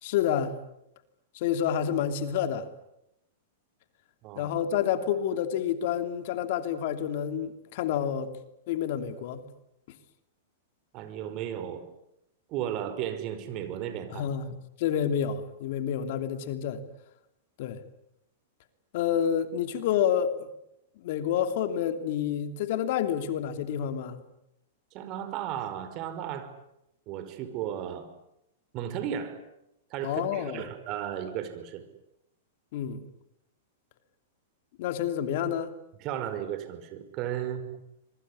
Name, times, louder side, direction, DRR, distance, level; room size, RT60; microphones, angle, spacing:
voice 1, 0.0-0.5 1.3-2.7 4.4-8.3 8.7-9.4 14.1-16.8 17.6-17.8 18.9-20.4 21.0-24.2 30.0-30.6 32.7-33.1 34.8-35.7, left 9 dB, 60° left, 3.0 m, -29 dB
voice 2, 10.9-11.8 12.5-14.3 24.9-26.5 27.1-28.1 28.7-29.4 29.9-31.8 36.0-37.8, right 10 dB, 45° right, 5.1 m, -34 dB
26.0 x 22.5 x 9.9 m
hypercardioid pair, 120°, 0 cm